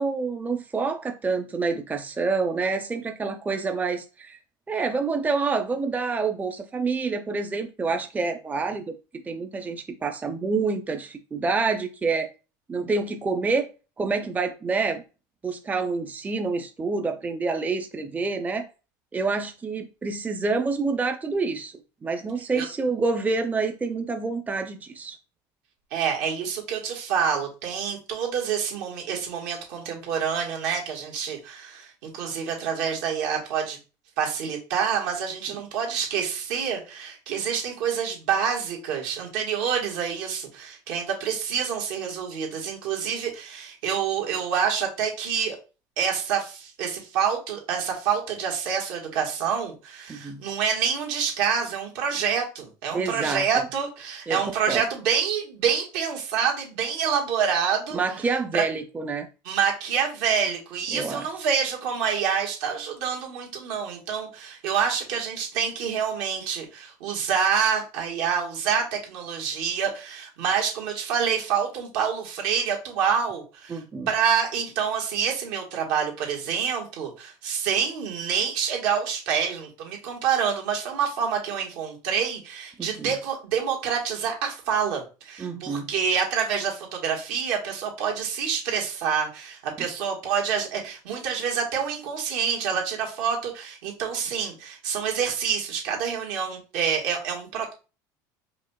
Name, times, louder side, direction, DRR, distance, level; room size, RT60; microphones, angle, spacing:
voice 1, 0.0-4.4 4.7-12.3 12.7-13.7 14.0-15.0 15.4-18.7 19.1-25.2 50.1-50.4 52.9-53.4 54.3-54.8 57.9-59.3 60.9-61.3 73.7-74.1 82.8-83.1 85.4-85.9 89.8-89.9, right 4 dB, 15° right, 0.5 m, -27 dB
voice 2, 25.9-33.8 34.2-45.6 46.0-58.0 58.5-58.6 59.4-73.8 74.1-97.7, right 7 dB, 80° right, 1.5 m, -27 dB
4.8 x 2.7 x 2.3 m
supercardioid pair, 100°, 10 cm